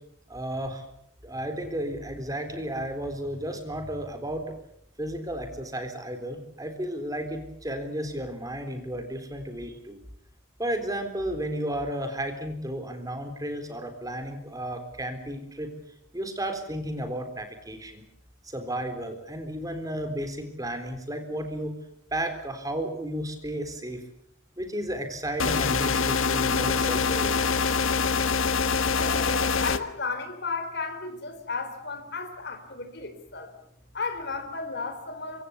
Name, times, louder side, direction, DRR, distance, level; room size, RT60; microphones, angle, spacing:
voice 1, 0.3-0.8 1.2-4.6 5.0-10.0 10.6-15.7 16.1-18.0 18.4-21.7 22.1-24.0 24.6-27.6, right 1 dB, 15° right, 7 dB, 3.8 m, -33 dB
sound 1, 25.4-29.8, left 5 dB, 80° left, 1.5 m, -24 dB
voice 2, 29.0-33.5 33.9-35.4, left 4 dB, 55° left, 6 dB, 3.9 m, -34 dB
26.0 x 25.0 x 7.1 m, 0.73 s
head